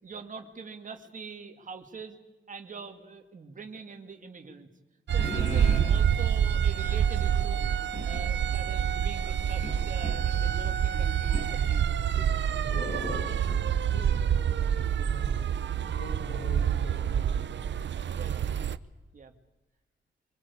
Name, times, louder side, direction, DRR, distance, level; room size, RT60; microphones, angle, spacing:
voice 1, 0.0-2.2 2.5-4.7 5.1-7.6 8.0-11.9 18.1-18.5 19.1-19.3, right 5 dB, 40° right, 5 dB, 2.4 m, -44 dB
sound 1, 5.1-18.8, right 8 dB, 65° right, 0.8 m, -27 dB
sound 2, 5.2-5.9 7.9-8.2 9.6-10.2 11.3-11.5 12.1-13.8, left 1 dB, 35° left, 5.6 m, -37 dB
voice 2, 13.9-15.5 15.8-17.5, left 1 dB, 90° left, 1 dB, 7.8 m, -44 dB
25.0 x 22.5 x 8.5 m, 1.1 s
wide cardioid pair, 165°, 20 cm